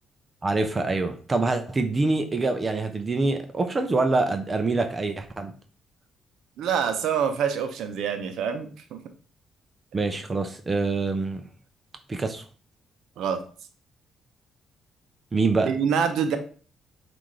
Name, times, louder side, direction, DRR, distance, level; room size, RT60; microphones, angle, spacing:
voice 1, 0.4-5.5 9.9-11.4 12.1-12.4 15.3-15.7, right 3 dB, 30° right, 6 dB, 0.5 m, -25 dB
voice 2, 6.6-9.0 13.2-13.4 15.6-16.4, right 7 dB, 80° right, 8 dB, 0.6 m, -26 dB
5.6 x 2.5 x 3.1 m, 0.41 s
cardioid pair, 90°, 0 cm